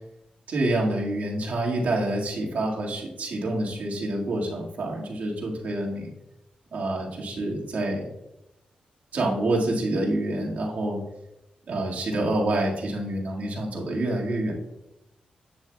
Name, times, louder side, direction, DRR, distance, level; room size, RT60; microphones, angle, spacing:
voice 1, 0.5-6.1 6.7-8.0 9.1-11.0 11.7-14.5, right 1 dB, 70° right, -2 dB, 1.8 m, -27 dB
8.6 x 7.1 x 2.3 m, 0.90 s
cardioid pair, 75°, 3 cm